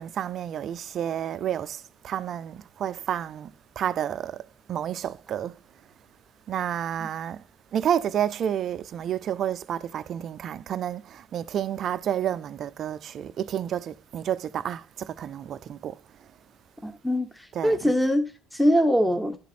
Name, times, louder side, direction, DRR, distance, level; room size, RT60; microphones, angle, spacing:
voice 1, 0.0-5.6 6.5-7.4 7.7-16.3 17.5-17.9, right 10 dB, 55° right, 0.5 m, -30 dB
voice 2, 16.8-19.4, equal, 5° left, 1.0 m, -23 dB
11.5 x 4.1 x 4.2 m
cardioid pair, 95°, 0 cm